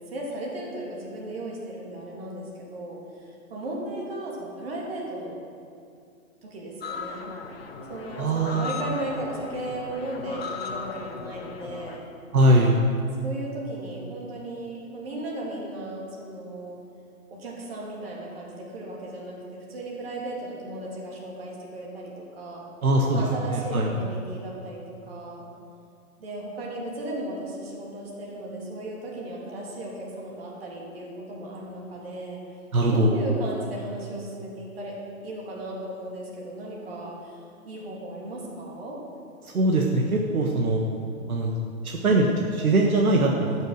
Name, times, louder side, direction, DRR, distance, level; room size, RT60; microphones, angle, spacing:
voice 1, 0.1-5.4 6.4-7.2 7.9-12.0 13.2-16.8 17.3-22.6 23.1-24.8 25.1-25.5 26.2-32.4 32.9-35.0 35.2-39.0, right 1 dB, 45° right, -3 dB, 2.8 m, -36 dB
sound 1, 6.8-12.0, left 5 dB, 45° left, 1.1 m, -37 dB
voice 2, 8.2-8.8 12.3-12.7 22.8-23.2 23.5-23.9 32.7-33.1 39.5-40.8 41.3-41.5 41.8-43.5, right 1 dB, 75° right, 0 dB, 1.5 m, -21 dB
12.5 x 6.6 x 6.4 m, 2.4 s
hypercardioid pair, 170°, 43 cm